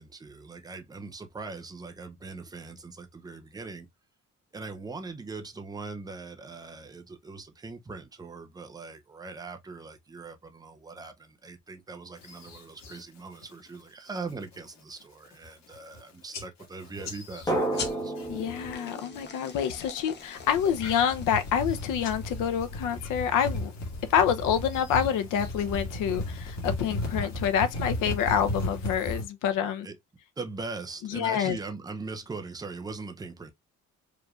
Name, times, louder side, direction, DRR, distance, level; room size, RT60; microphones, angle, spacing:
voice 1, 0.0-3.9 4.5-18.1 29.8-30.0 30.4-33.5, right 4 dB, 10° right, 0.5 m, -41 dB
sound 1, 12.2-13.0 13.4-13.8 14.2-14.6 15.0-15.1 15.3-16.0 16.3-18.9 19.2-19.7 20.2-29.3, left 1 dB, 60° left, 1.9 m, -36 dB
Drum, 17.5-20.2, right 1 dB, 10° left, 1.1 m, -32 dB
sound 2, 17.7-22.8, left 5 dB, 35° left, 0.9 m, -43 dB
voice 2, 18.3-23.7 24.1-29.9 31.1-31.6, left 8 dB, 75° left, 0.7 m, -27 dB
4.9 x 3.1 x 2.4 m
cardioid pair, 180°, 31 cm